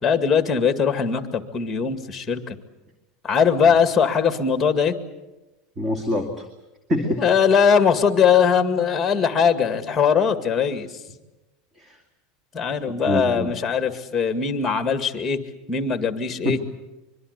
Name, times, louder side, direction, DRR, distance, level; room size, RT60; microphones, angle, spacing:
voice 1, 0.0-2.6 3.2-5.0 7.0-10.9 12.5-15.4 15.7-16.6, left 6 dB, 15° left, 9 dB, 2.1 m, -20 dB
voice 2, 5.8-6.5 6.9-7.2 11.8-12.0 13.1-13.5 16.4-16.6, left 1 dB, 20° right, 5 dB, 2.4 m, -25 dB
25.0 x 23.5 x 8.2 m, 1.0 s
supercardioid pair, 145°, 0 cm